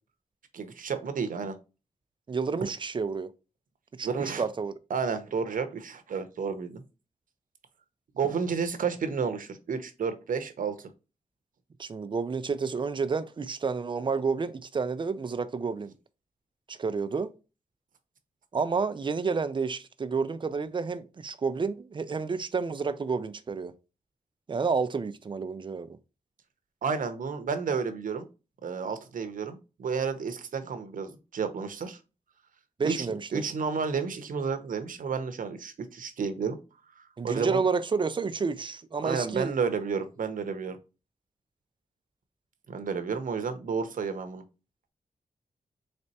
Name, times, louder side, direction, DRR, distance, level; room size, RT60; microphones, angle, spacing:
voice 1, 0.5-1.6 4.0-4.4 4.9-6.8 8.1-10.8 26.8-28.2 28.6-32.0 32.8-33.1 33.3-36.6 37.0-37.6 39.0-40.8 42.7-44.4, right 5 dB, 85° right, 0.7 m, -31 dB
voice 2, 2.3-3.3 4.0-4.1 4.4-4.7 11.8-15.9 16.7-17.3 18.5-23.7 24.5-26.0 32.8-33.4 37.2-39.5, right 5 dB, 35° right, 0.4 m, -30 dB
4.2 x 3.3 x 2.7 m
wide cardioid pair, 140°, 14 cm